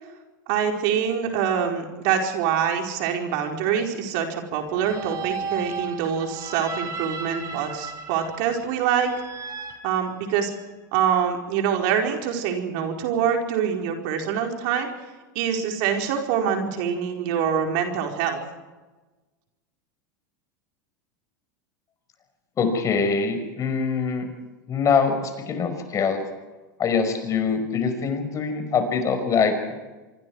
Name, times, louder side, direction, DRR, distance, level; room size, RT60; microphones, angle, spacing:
voice 1, 0.5-9.1 9.8-10.5 10.9-14.9 15.3-18.4, right 8 dB, 60° right, 3 dB, 4.7 m, -25 dB
sound 1, 4.7-10.7, right 5 dB, 35° right, 5.2 m, -35 dB
voice 2, 22.6-24.3 24.7-26.2 26.8-29.8, left 5 dB, 30° left, 7 dB, 5.4 m, -23 dB
26.0 x 25.0 x 4.8 m, 1.2 s
hypercardioid pair, 100°, 10 cm